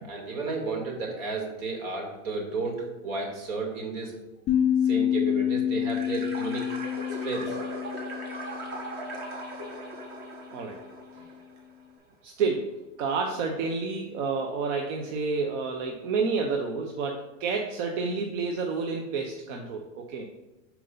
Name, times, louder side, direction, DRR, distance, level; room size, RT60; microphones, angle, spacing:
voice 1, 0.0-4.1 4.8-6.7 7.2-7.6, right 3 dB, 80° right, 0 dB, 2.2 m, -32 dB
sound 1, 4.5-9.6, left 10 dB, 25° left, 2.2 m, -28 dB
sound 2, 5.8-11.6, right 2 dB, 25° right, 1.3 m, -39 dB
voice 2, 12.2-12.7 13.0-20.3, right 4 dB, 65° right, 2 dB, 0.9 m, -29 dB
6.7 x 4.6 x 3.9 m, 1.1 s
supercardioid pair, 140°, 40 cm